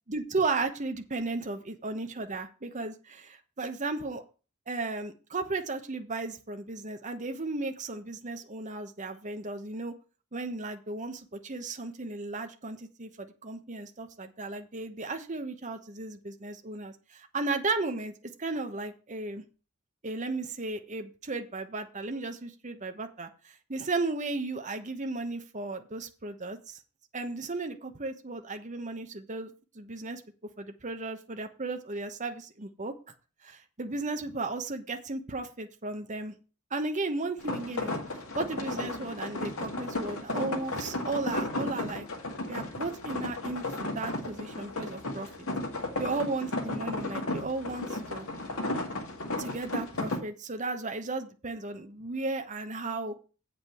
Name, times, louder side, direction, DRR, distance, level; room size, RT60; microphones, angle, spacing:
voice 1, 0.1-4.2 4.7-9.9 10.3-18.1 18.4-19.4 20.0-26.8 27.1-30.2 30.6-32.9 33.4-36.3 36.7-38.0 38.3-42.1 42.4-45.5 46.0-48.3 49.4-53.1, right 3 dB, 35° right, 6 dB, 1.1 m, -35 dB
sound 1, 37.4-50.2, left 2 dB, 80° left, 2.1 m, -34 dB
8.1 x 5.2 x 6.9 m, 0.35 s
head